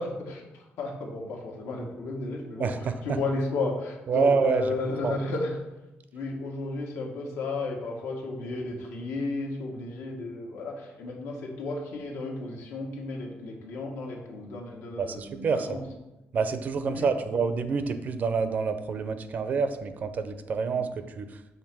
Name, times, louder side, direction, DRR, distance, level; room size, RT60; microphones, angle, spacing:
voice 1, 0.0-5.6 6.1-15.8 16.8-17.4 20.8-20.9, left 2 dB, 90° left, 0 dB, 1.4 m, -33 dB
voice 2, 2.6-3.2 4.1-4.7 5.0-5.2 15.0-15.7 16.3-20.9 21.2-21.4, right 5 dB, 40° right, 10 dB, 0.4 m, -27 dB
6.6 x 3.2 x 6.0 m, 0.99 s
cardioid pair, 170°, 4 cm